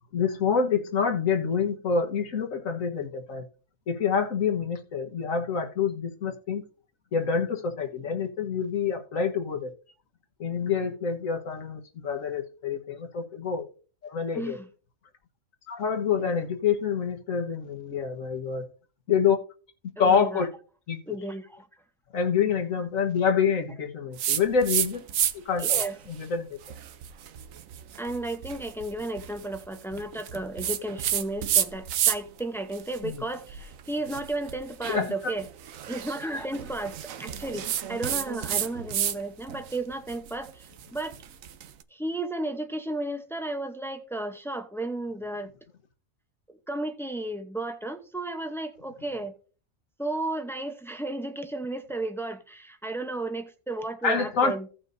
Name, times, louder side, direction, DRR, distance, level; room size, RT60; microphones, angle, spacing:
voice 1, 0.1-3.5 3.9-6.6 7.1-9.7 10.4-13.7 14.0-14.6 15.7-18.7 19.1-19.4 20.0-20.5 20.9-21.2 22.1-25.0 25.5-25.8 26.1-26.5 33.0-33.2 34.9-35.1 54.0-54.5, left 6 dB, 70° left, 1.7 m, -27 dB
voice 2, 14.3-14.7 16.1-16.3 20.0-20.5 21.1-21.7 22.4-22.5 25.6-26.0 28.0-35.5 35.9-41.1 41.9-45.5 46.5-49.3 50.0-54.7, right 2 dB, 5° left, 0.6 m, -33 dB
sound 1, 24.2-25.3 25.6-26.1 26.6-32.4 32.7-39.2 39.5-41.7, right 10 dB, 75° right, 1.1 m, -30 dB
16.5 x 5.9 x 2.7 m
omnidirectional pair, 1.4 m